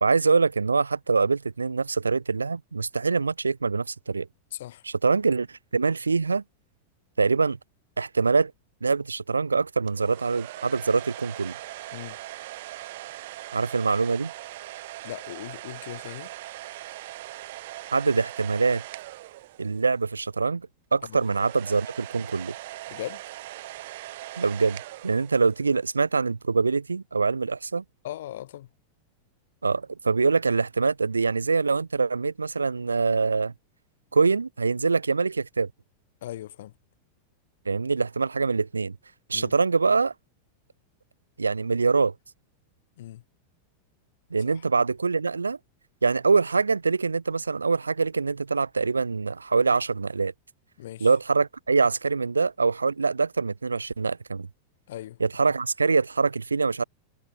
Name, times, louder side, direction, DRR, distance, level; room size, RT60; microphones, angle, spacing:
voice 1, 0.0-4.3 5.0-6.4 7.2-7.6 8.0-8.5 8.8-11.6 13.5-14.3 17.9-18.8 19.6-22.5 24.4-24.8 25.0-27.8 29.6-33.5 34.1-35.7 37.7-39.0 39.3-40.1 41.4-42.1 44.3-45.6 46.0-50.3 51.0-54.5 55.2-56.8, right 4 dB, 75° right, 0.4 m, -24 dB
voice 2, 4.5-4.8 11.9-12.2 15.0-16.3 21.0-21.2 22.9-23.2 28.0-28.7 36.2-36.7 39.3-39.5 43.0-43.2 44.5-44.6 50.8-51.1 54.9-55.2, left 13 dB, 60° left, 0.7 m, -39 dB
sound 1, 9.9-20.0 21.1-25.8, right 16 dB, 55° right, 1.0 m, -41 dB
figure-of-eight pair, 90°, 0 cm